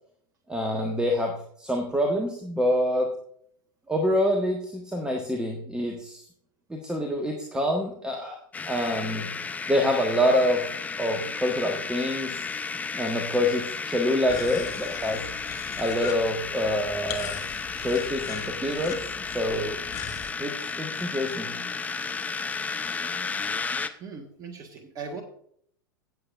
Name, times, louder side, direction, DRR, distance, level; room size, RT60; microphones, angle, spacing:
voice 1, 0.5-1.3 1.6-3.1 3.9-6.2 6.7-8.4 8.7-9.3 9.7-10.6 11.0-12.4 12.9-15.2 15.8-17.4 17.8-19.1 19.3-19.8 20.4-21.6, equal, 5° right, 2 dB, 1.5 m, -26 dB
sound 1, 8.5-23.9, left 5 dB, 15° left, 0.7 m, -33 dB
sound 2, 14.3-20.3, left 8 dB, 30° left, 1.6 m, -40 dB
voice 2, 23.6-25.2, right 5 dB, 30° right, 3 dB, 1.5 m, -40 dB
17.0 x 7.8 x 2.5 m, 0.63 s
figure-of-eight pair, 90°, 11 cm